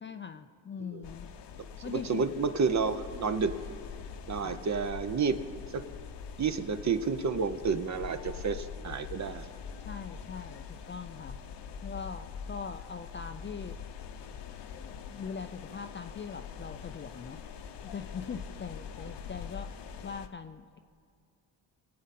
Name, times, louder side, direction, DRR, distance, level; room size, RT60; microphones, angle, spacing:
voice 1, 0.0-1.3 1.8-2.3 3.1-3.4 4.4-4.6 9.8-13.8 14.7-17.4 17.8-19.8 20.0-20.8, left 6 dB, 30° left, 9 dB, 0.4 m, -42 dB
sound 1, 1.0-20.3, left 6 dB, 70° left, 0.9 m, -44 dB
voice 2, 1.8-3.5 4.3-5.4 5.7-5.8 6.4-9.5, right 5 dB, 40° right, 10 dB, 0.8 m, -30 dB
22.0 x 8.6 x 4.2 m, 2.2 s
cardioid pair, 95°, 42 cm